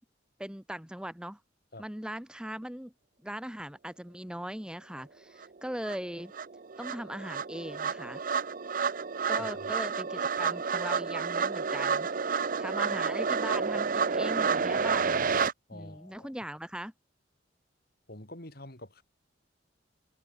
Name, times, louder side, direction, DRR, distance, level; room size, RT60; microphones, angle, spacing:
voice 1, 0.4-1.4 1.8-2.9 3.2-6.3 6.8-8.2 9.3-12.3 12.6-15.3 15.7-16.9, equal, 5° right, 1.3 m, -40 dB
sound 1, 5.4-5.5 5.9-15.5, right 5 dB, 45° right, 0.6 m, -30 dB
voice 2, 15.7-16.3 18.1-19.0, left 1 dB, 55° left, 5.7 m, -46 dB
head